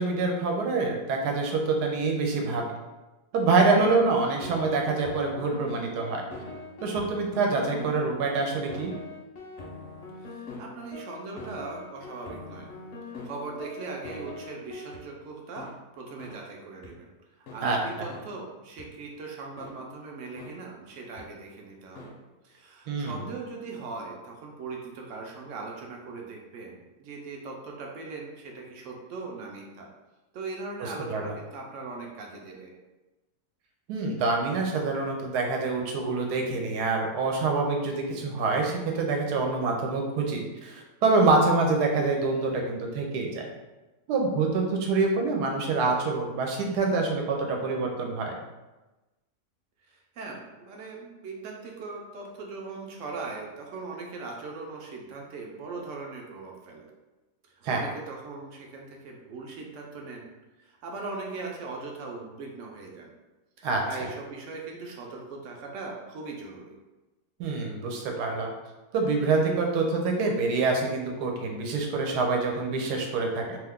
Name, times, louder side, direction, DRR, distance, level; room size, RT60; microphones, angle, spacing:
voice 1, 0.0-2.6 3.3-6.2 6.8-8.9 17.6-17.8 22.9-23.2 31.1-31.3 33.9-43.5 44.1-48.3 57.6-57.8 63.6-63.8 67.4-68.5 68.9-73.6, right 3 dB, 90° right, 1 dB, 1.2 m, -26 dB
sound 1, 3.5-15.0 15.6-15.7 16.2-16.3 16.8-16.9 17.5-17.6 18.1-18.2 18.8-18.9 19.6-19.7 20.4-20.5 21.2-21.3 22.0-22.1, left 3 dB, 60° left, 0.8 m, -42 dB
voice 2, 10.2-12.7 13.0-17.1 17.4-22.1 22.4-29.9 30.3-32.7 49.9-56.9 57.6-60.3 60.6-63.1 63.6-66.8, right 3 dB, 70° right, 0 dB, 0.8 m, -40 dB
2.8 x 2.3 x 3.5 m, 1.1 s
omnidirectional pair, 1.7 m